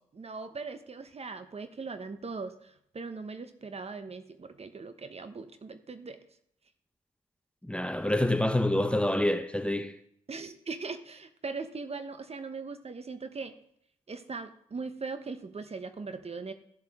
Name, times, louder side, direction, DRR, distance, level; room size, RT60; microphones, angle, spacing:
voice 1, 0.1-6.2 10.3-13.5 14.1-16.5, right 4 dB, 40° right, 1.1 m, -40 dB
voice 2, 7.6-10.0, left 1 dB, 5° left, 0.9 m, -27 dB
14.5 x 7.5 x 3.7 m
hypercardioid pair, 45°, 16 cm